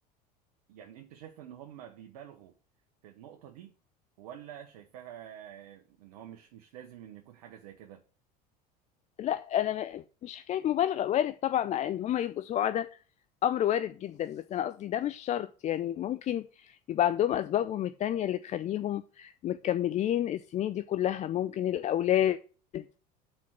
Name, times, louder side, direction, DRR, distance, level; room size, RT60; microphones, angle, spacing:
voice 1, 0.7-2.5 3.0-3.7 4.2-8.0, right 10 dB, 75° right, 1.0 m, -48 dB
voice 2, 9.2-12.9 13.4-22.4 22.7-22.8, left 11 dB, 35° left, 0.4 m, -29 dB
5.9 x 4.5 x 5.8 m
hypercardioid pair, 85°, 20 cm